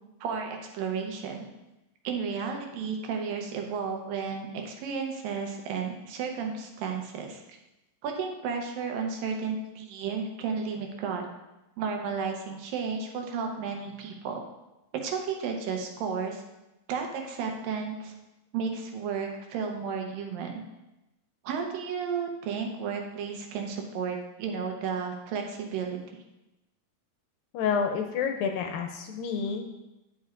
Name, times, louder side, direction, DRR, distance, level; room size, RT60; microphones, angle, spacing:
voice 1, 0.2-1.4 2.0-7.4 8.0-11.3 11.8-14.4 14.9-16.4 16.9-18.1 18.5-20.6 21.4-26.0, right 6 dB, 80° right, 3 dB, 2.5 m, -33 dB
voice 2, 27.5-29.6, left 6 dB, 80° left, 4 dB, 2.2 m, -29 dB
9.8 x 7.3 x 2.5 m, 0.98 s
omnidirectional pair, 4.2 m